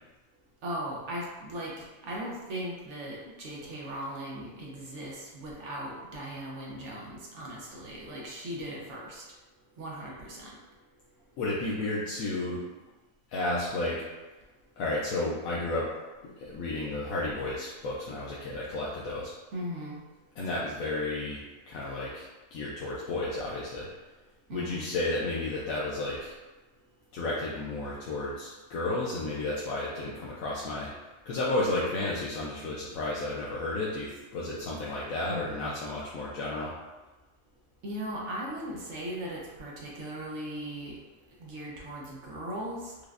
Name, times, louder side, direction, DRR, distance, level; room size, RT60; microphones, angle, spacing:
voice 1, 0.6-9.2 9.8-10.5 19.5-20.0 24.5-24.9 35.3-35.8 37.8-40.9 41.4-43.0, equal, 70° right, -4 dB, 1.0 m, -38 dB
voice 2, 11.4-12.6 13.3-14.0 14.8-15.9 16.2-19.3 20.4-23.9 24.5-26.3 27.1-30.9 31.3-36.7, left 2 dB, 90° left, -6 dB, 1.0 m, -32 dB
4.8 x 2.1 x 2.4 m, 1.2 s
omnidirectional pair, 1.4 m